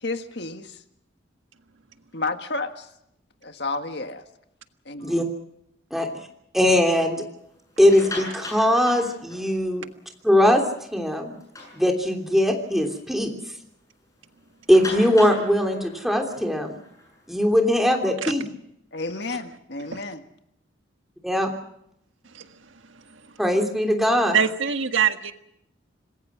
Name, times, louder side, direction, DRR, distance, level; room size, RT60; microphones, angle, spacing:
voice 1, 0.0-0.8 2.1-2.9 3.4-4.2 4.9-5.2 18.9-20.2, left 3 dB, 60° left, 7 dB, 1.7 m, -31 dB
voice 2, 6.5-7.2 7.8-9.8 10.2-10.6 10.9-11.3 11.7-13.3 14.7-16.8 17.3-18.5 21.2-21.5 23.4-24.4, equal, ahead, 2 dB, 3.1 m, -20 dB
sound 1, 7.7-9.8 10.3-10.5 10.8-10.9 11.3-12.4 12.8-13.0 13.3-13.4 14.7-18.1, left 2 dB, 15° left, 8.0 m, -39 dB
voice 3, 24.3-25.3, right 8 dB, 90° right, 7 dB, 1.6 m, -23 dB
27.0 x 20.0 x 6.2 m, 0.76 s
head